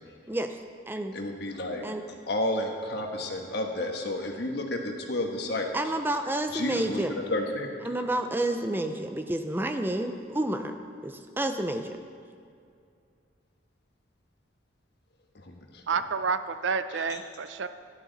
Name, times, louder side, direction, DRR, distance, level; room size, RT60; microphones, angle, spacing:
voice 1, 1.1-1.8 2.3-5.7 6.5-8.1 15.3-15.8 16.9-17.2, left 1 dB, 60° left, 2 dB, 1.3 m, -31 dB
voice 2, 5.7-7.1 7.9-10.7 11.0-12.0, right 1 dB, 10° right, 6 dB, 0.4 m, -29 dB
voice 3, 15.9-17.7, right 5 dB, 75° right, 11 dB, 0.5 m, -29 dB
13.0 x 11.0 x 4.0 m, 2.3 s
head